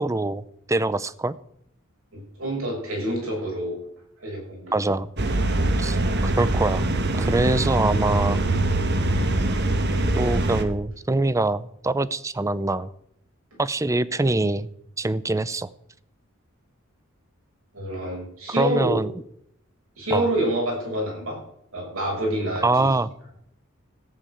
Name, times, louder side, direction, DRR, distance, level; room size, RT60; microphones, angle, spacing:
voice 1, 0.0-1.4 4.7-5.1 5.8-6.0 6.2-6.8 7.1-8.4 10.2-12.9 13.6-14.7 15.0-15.7 18.6-19.1 20.1-20.3 22.6-23.1, right 2 dB, 15° right, 17 dB, 0.5 m, -24 dB
voice 2, 2.1-3.8 4.2-4.7 17.7-19.0 20.0-21.4 21.7-22.9, right 1 dB, 80° right, -1 dB, 6.6 m, -27 dB
sound 1, 5.2-10.6, right 2 dB, 55° right, 1.3 m, -23 dB
14.5 x 7.0 x 8.5 m, 0.73 s
head